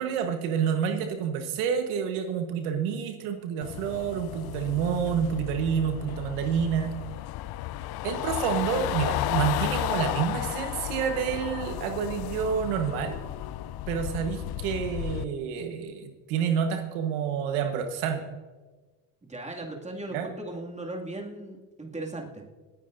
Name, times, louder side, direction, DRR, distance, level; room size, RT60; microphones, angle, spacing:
voice 1, 0.0-6.9 8.0-13.2 13.9-18.2 20.1-20.3, right 7 dB, 85° right, 6 dB, 1.3 m, -28 dB
sound 1, 3.6-15.2, left 14 dB, 55° left, 0.6 m, -33 dB
voice 2, 19.3-22.4, right 2 dB, 15° right, 0 dB, 2.3 m, -37 dB
26.0 x 9.5 x 2.6 m, 1.3 s
supercardioid pair, 85°, 45 cm